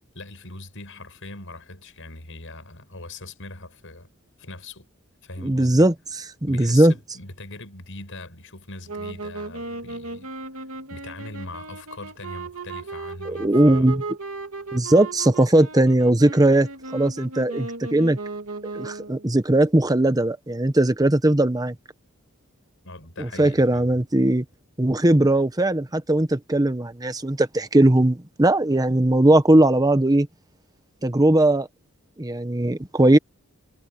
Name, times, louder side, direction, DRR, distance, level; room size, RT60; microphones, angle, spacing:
voice 1, 0.1-4.1 4.4-4.9 5.2-5.9 6.5-10.3 10.9-14.0 22.8-24.0, left 2 dB, 65° left, 7.9 m, -41 dB
voice 2, 5.4-5.9 6.5-6.9 13.3-14.0 14.7-18.2 18.7-21.7 23.2-24.4 24.8-30.3 31.0-31.7 32.2-33.2, right 1 dB, 20° right, 1.1 m, -19 dB
sound 1, 8.9-19.3, right 3 dB, 80° right, 2.8 m, -35 dB
head